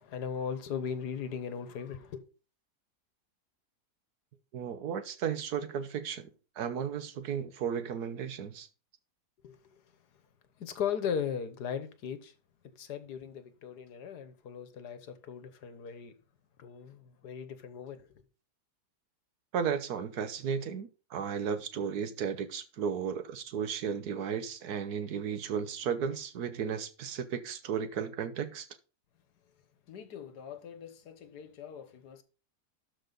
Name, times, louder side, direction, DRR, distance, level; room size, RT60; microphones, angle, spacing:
voice 1, 0.0-2.2 9.4-9.8 10.6-12.3 12.7-16.1 16.6-18.1 29.9-32.2, left 7 dB, 80° left, 1.6 m, -38 dB
voice 2, 4.5-6.3 6.6-8.7 19.5-28.7, right 7 dB, 70° right, 1.4 m, -34 dB
12.5 x 4.8 x 3.9 m
omnidirectional pair, 1.7 m